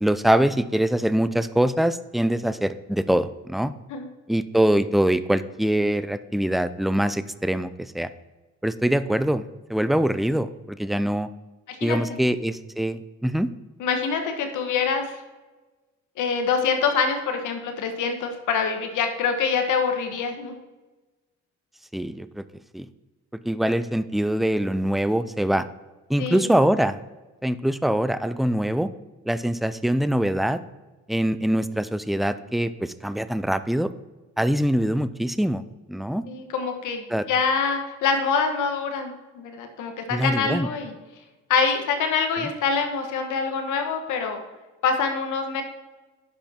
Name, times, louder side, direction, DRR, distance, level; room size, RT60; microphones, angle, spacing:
voice 1, 0.0-3.7 4.3-8.1 8.6-11.3 11.8-13.5 21.9-22.4 22.7-22.9 23.5-25.7 26.1-27.0 27.4-28.9 29.3-30.6 31.1-33.9 34.4-35.6 35.9-36.2 37.1-37.2 40.1-40.7, right 1 dB, ahead, 13 dB, 0.4 m, -23 dB
voice 2, 11.7-12.2 13.8-15.2 16.2-20.5 26.2-26.5 36.2-40.9 41.5-44.4 44.8-45.6, left 5 dB, 80° left, 5 dB, 1.4 m, -25 dB
10.5 x 5.7 x 4.4 m, 1.2 s
cardioid pair, 90°, 30 cm